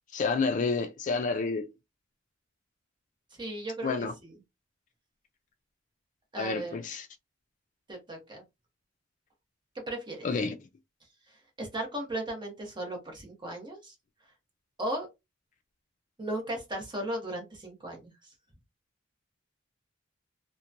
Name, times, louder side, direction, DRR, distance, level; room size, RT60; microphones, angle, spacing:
voice 1, 0.1-1.7 3.8-4.1 6.3-7.1 10.2-10.6, left 4 dB, 40° left, 0.4 m, -29 dB
voice 2, 3.4-4.4 6.3-6.8 7.9-8.4 9.9-10.3 11.6-13.9 14.8-15.1 16.2-18.1, right 1 dB, 25° right, 1.0 m, -36 dB
2.9 x 2.1 x 2.5 m
head